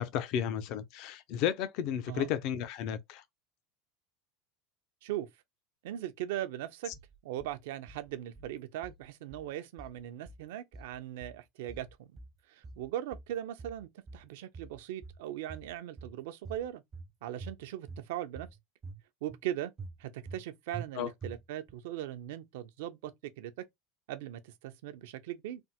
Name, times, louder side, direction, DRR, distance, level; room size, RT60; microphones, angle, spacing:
voice 1, 0.0-3.2 21.0-21.1, left 9 dB, 55° left, 0.5 m, -33 dB
voice 2, 5.8-6.9 7.2-12.1 12.5-16.8 17.2-18.5 19.2-19.7 20.0-23.5 24.1-25.6, right 12 dB, 75° right, 0.5 m, -39 dB
sound 1, 6.9-7.5 7.9-8.5 8.8-9.5 9.8-10.5 10.7-11.4 11.7-12.4 12.6-13.3 13.6-14.3 14.5-15.2 15.5-16.2 16.5-17.1 17.4-18.1 18.4-19.0 19.3-19.4 19.8-20.4 20.7-20.9 21.2-21.7, right 4 dB, 25° right, 0.4 m, -46 dB
3.3 x 2.0 x 2.8 m
supercardioid pair, 125°, 0 cm